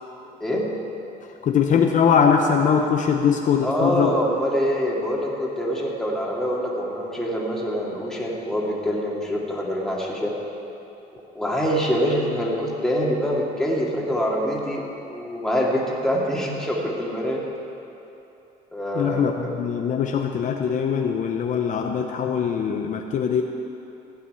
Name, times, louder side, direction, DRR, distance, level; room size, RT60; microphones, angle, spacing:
voice 1, 0.4-0.7 3.6-10.3 11.1-17.4 18.7-19.3, equal, 5° left, -4 dB, 2.5 m, -25 dB
voice 2, 1.4-4.1 18.9-23.4, left 7 dB, 50° left, 3 dB, 0.8 m, -21 dB
15.5 x 5.9 x 9.6 m, 2.9 s
cardioid pair, 110°, 17 cm